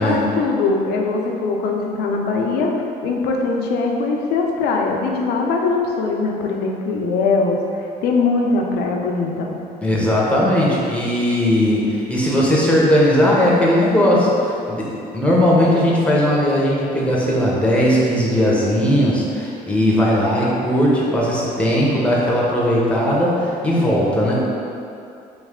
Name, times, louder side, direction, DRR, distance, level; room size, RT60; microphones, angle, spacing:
voice 1, 0.0-2.7 3.0-7.6 8.0-9.6, left 3 dB, 80° left, 1 dB, 0.5 m, -21 dB
voice 2, 9.8-24.3, equal, 5° left, -5 dB, 0.8 m, -18 dB
3.2 x 3.0 x 3.6 m, 2.6 s
cardioid pair, 110°, 17 cm